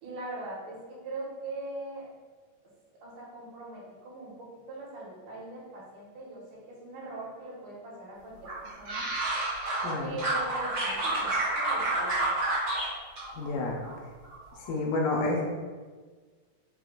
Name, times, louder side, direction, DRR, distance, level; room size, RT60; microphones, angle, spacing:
voice 1, 0.0-2.1 3.0-9.1 10.0-12.2, right 2 dB, 75° right, -5 dB, 2.5 m, -41 dB
sound 1, 8.4-9.9 10.2-12.9 13.2-13.9 14.2-14.7, right 2 dB, 55° right, 1.4 m, -29 dB
voice 2, 9.8-10.2 13.4-13.8 14.7-15.4, left 2 dB, 85° left, -1 dB, 2.2 m, -29 dB
5.7 x 2.2 x 3.6 m, 1.4 s
omnidirectional pair, 3.9 m